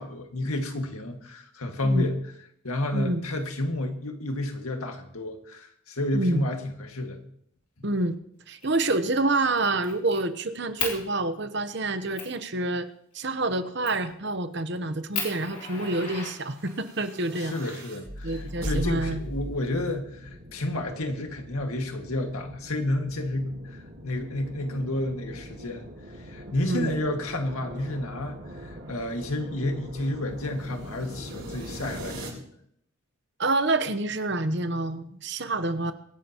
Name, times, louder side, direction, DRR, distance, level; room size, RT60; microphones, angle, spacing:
voice 1, 0.0-2.2 2.6-7.2 17.4-32.3, left 1 dB, 85° left, 4 dB, 2.0 m, -30 dB
voice 2, 6.1-6.4 7.8-8.1 8.5-12.9 13.1-17.5 18.2-19.2 26.7-27.0 33.4-35.9, right 2 dB, 55° right, 10 dB, 0.9 m, -27 dB
Fire, 8.6-8.9 9.3-10.2 10.8-11.0 11.6-11.7 12.2-12.4 13.8-14.1 14.6-14.7 15.1-16.9 18.0-18.9, left 5 dB, 35° left, 3.2 m, -35 dB
sound 1, 16.5-32.3, equal, 85° right, 6.6 m, -40 dB
23.5 x 11.0 x 3.0 m, 0.71 s
head